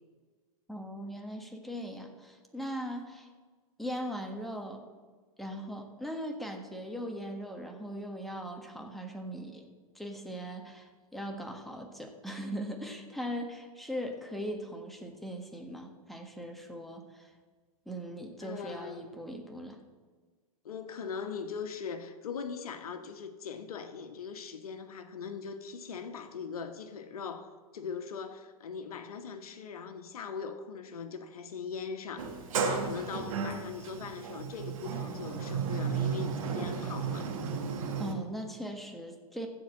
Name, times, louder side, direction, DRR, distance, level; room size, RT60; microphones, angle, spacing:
voice 1, 0.7-3.3 3.8-4.8 5.4-9.7 9.9-17.3 17.8-19.8 38.0-39.5, equal, ahead, 3 dB, 1.4 m, -39 dB
voice 2, 18.4-19.1 20.6-37.3, left 6 dB, 80° left, 8 dB, 1.4 m, -40 dB
Sliding door, 32.2-38.1, right 6 dB, 65° right, 2.0 m, -34 dB
15.0 x 5.1 x 7.5 m, 1.5 s
hypercardioid pair, 125°, 19 cm